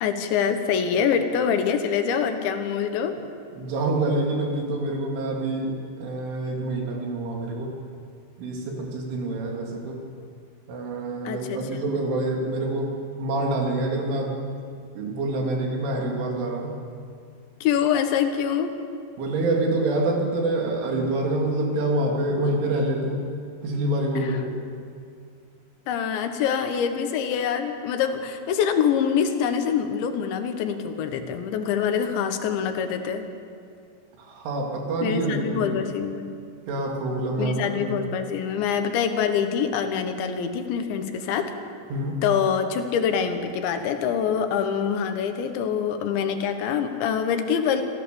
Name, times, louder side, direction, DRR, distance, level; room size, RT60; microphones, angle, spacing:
voice 1, 0.0-3.2 11.3-11.9 17.6-18.7 24.2-24.4 25.9-33.3 35.0-36.3 37.4-41.5 42.2-47.8, left 7 dB, 75° left, 7 dB, 3.5 m, -25 dB
voice 2, 3.6-7.8 8.4-10.0 10.7-14.4 15.0-16.7 19.2-23.2 23.6-24.5 34.2-35.8 36.7-37.9 41.9-42.2, right 2 dB, 90° right, 0 dB, 5.3 m, -26 dB
26.5 x 15.5 x 7.0 m, 2.3 s
omnidirectional pair, 5.4 m